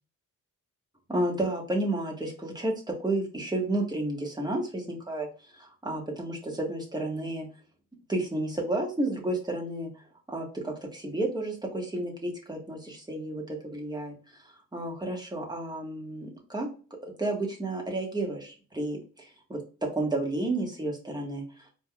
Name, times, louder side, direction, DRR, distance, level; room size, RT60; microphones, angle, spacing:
voice 1, 1.1-2.7 3.0-5.3 5.5-7.5 8.1-9.9 10.3-14.1 14.7-16.7 17.2-19.6 19.9-21.4, right 2 dB, 10° right, -1 dB, 1.6 m, -31 dB
4.4 x 3.6 x 2.3 m, 0.36 s
cardioid pair, 100°, 33 cm